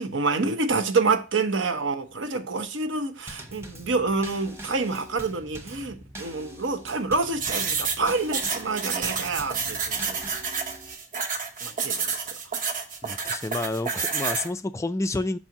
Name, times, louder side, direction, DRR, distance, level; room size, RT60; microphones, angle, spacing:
voice 1, 0.0-10.2 11.6-12.2, right 3 dB, 65° right, 0.9 m, -27 dB
Drum kit / Snare drum / Bass drum, 3.3-11.0, right 1 dB, 15° right, 1.2 m, -43 dB
sound 1, 7.4-14.5, right 5 dB, 45° right, 1.1 m, -29 dB
voice 2, 13.0-15.4, left 2 dB, 15° left, 0.3 m, -29 dB
6.2 x 4.5 x 5.8 m
head